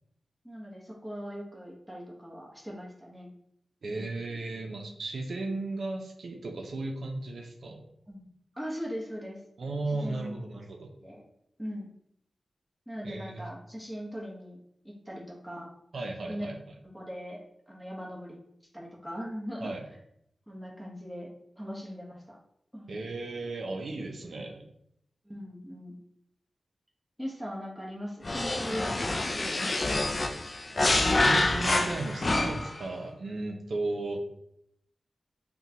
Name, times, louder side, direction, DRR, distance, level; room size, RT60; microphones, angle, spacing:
voice 1, 0.4-3.3 3.9-4.1 8.1-9.4 9.9-10.4 10.9-11.2 11.6-11.9 12.9-14.6 14.8-15.7 16.3-16.5 16.9-18.4 18.7-19.7 20.5-21.3 21.6-22.4 22.7-23.0 25.2-26.0 27.2-29.9, equal, ahead, -3 dB, 1.1 m, -40 dB
voice 2, 3.8-7.8 9.6-10.9 13.0-13.5 15.9-16.6 19.6-19.8 22.9-24.7 31.2-34.2, right 2 dB, 75° right, 2 dB, 0.5 m, -35 dB
sound 1, 28.2-32.8, left 2 dB, 40° left, 0.4 m, -27 dB
5.6 x 2.2 x 2.9 m, 0.74 s
wide cardioid pair, 100°, 0 cm